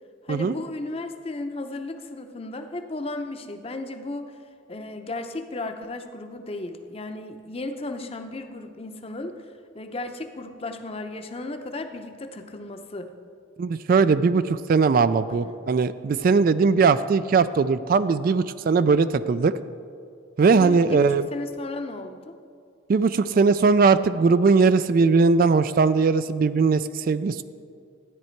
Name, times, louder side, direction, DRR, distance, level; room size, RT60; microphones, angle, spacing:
voice 1, 0.2-4.4 4.7-9.4 9.7-13.1 15.4-15.5 20.6-22.4, left 2 dB, 30° left, 6 dB, 0.7 m, -35 dB
voice 2, 13.6-19.5 20.4-21.3 22.9-27.4, right 4 dB, 50° right, 13 dB, 0.3 m, -20 dB
13.0 x 9.6 x 4.5 m, 2.3 s
head